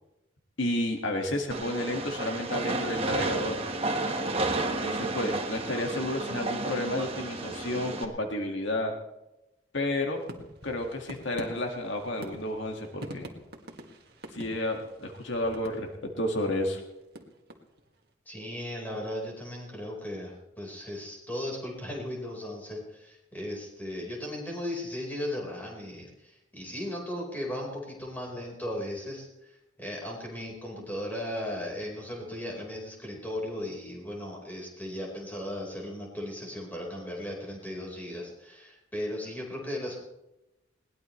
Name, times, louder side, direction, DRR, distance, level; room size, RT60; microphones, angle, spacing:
voice 1, 0.6-3.6 4.7-8.9 9.7-10.2 10.6-13.3 14.3-16.8, left 1 dB, 70° left, 2 dB, 1.9 m, -31 dB
Train, 1.5-8.0, right 2 dB, 30° right, 1.4 m, -32 dB
sound 1, 10.1-16.2 16.6-18.0, right 1 dB, 50° right, 1.8 m, -46 dB
voice 2, 18.3-29.5 29.8-40.0, left 1 dB, 10° left, -2 dB, 4.4 m, -36 dB
21.0 x 18.5 x 3.2 m, 0.94 s
head